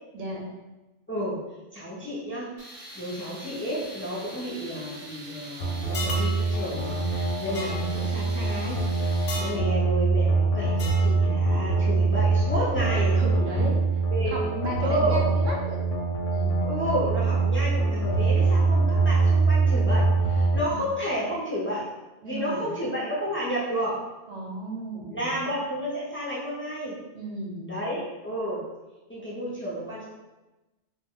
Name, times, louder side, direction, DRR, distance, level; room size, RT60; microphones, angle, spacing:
voice 1, 0.1-0.4 13.1-13.8 14.3-15.8 16.3-16.6 20.6-20.9 22.2-22.7 24.3-25.4 27.1-27.8, right 2 dB, 85° right, -1 dB, 1.0 m, -34 dB
voice 2, 1.1-1.4 1.7-8.8 9.4-13.2 14.1-14.4 14.8-15.2 16.6-21.9 22.2-24.1 25.1-27.0 27.7-28.6 29.1-30.0, equal, 20° left, -8 dB, 0.3 m, -31 dB
Tools, 2.6-9.5, right 1 dB, 40° right, 0.5 m, -43 dB
sound 1, 5.6-20.6, right 3 dB, 90° left, 0.9 m, -24 dB
sound 2, 5.9-6.3 7.5-7.7 9.3-9.6 10.8-11.1, left 1 dB, 60° left, 0.6 m, -33 dB
2.3 x 2.2 x 3.6 m, 1.1 s
omnidirectional pair, 1.2 m